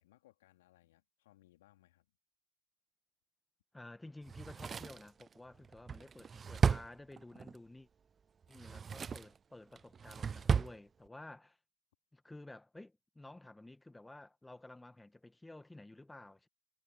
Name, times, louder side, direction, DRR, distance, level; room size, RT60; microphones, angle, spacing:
voice 1, 0.0-2.1, left 16 dB, 65° left, 3.5 m, -66 dB
voice 2, 3.7-7.9 8.5-11.6 12.1-16.5, left 2 dB, 5° left, 2.0 m, -53 dB
Drawer open or close, 4.3-7.6 8.4-9.4 9.8-10.8 11.1-11.2, right 6 dB, 25° right, 0.4 m, -35 dB
hypercardioid pair, 85°, 0 cm